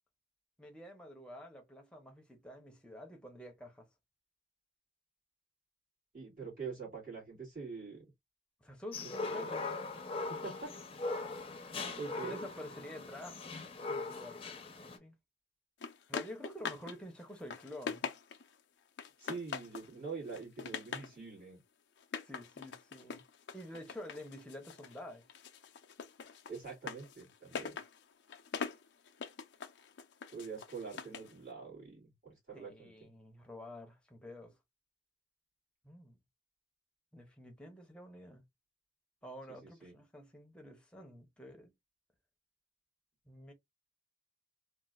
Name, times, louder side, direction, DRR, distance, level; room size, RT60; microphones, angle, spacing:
voice 1, 0.6-3.9 8.6-9.7 12.1-13.5 13.8-15.1 16.1-18.1 22.2-23.2 23.5-25.2 32.5-34.5 35.8-36.2 37.1-38.4 39.2-41.7 43.3-43.5, left 1 dB, 5° left, 0.8 m, -49 dB
voice 2, 6.1-8.0 9.2-9.5 10.4-10.7 12.0-12.5 19.2-21.6 26.5-27.8 30.3-32.9 39.6-40.0, right 5 dB, 55° right, 2.4 m, -45 dB
sound 1, 8.9-15.0, left 3 dB, 30° left, 0.7 m, -40 dB
sound 2, 15.8-17.0 17.3-18.5 19.0-19.9 20.3-21.1 22.0-25.0 25.3-31.3, left 5 dB, 85° left, 0.5 m, -43 dB
3.8 x 2.4 x 2.4 m
head